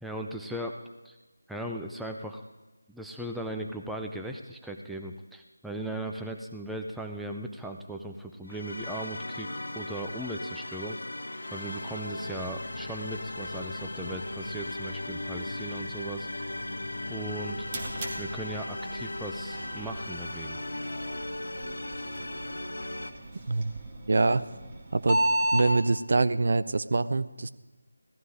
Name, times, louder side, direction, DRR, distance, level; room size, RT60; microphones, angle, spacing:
voice 1, 0.0-0.8 1.0-1.2 1.5-2.4 2.9-11.0 11.5-16.3 17.1-17.7 18.2-20.6, right 1 dB, ahead, 1 dB, 0.5 m, -38 dB
sound 1, 8.5-23.1, left 1 dB, 60° left, 1.7 m, -37 dB
sound 2, 12.2-18.4, left 3 dB, 30° left, 1.3 m, -45 dB
sound 3, 17.2-25.7, right 1 dB, 25° right, 2.2 m, -34 dB
voice 2, 24.1-24.5 24.9-25.2 25.5-27.5, right 3 dB, 50° right, 13 dB, 0.6 m, -25 dB
17.5 x 13.0 x 4.9 m, 1.2 s
figure-of-eight pair, 165°, 0 cm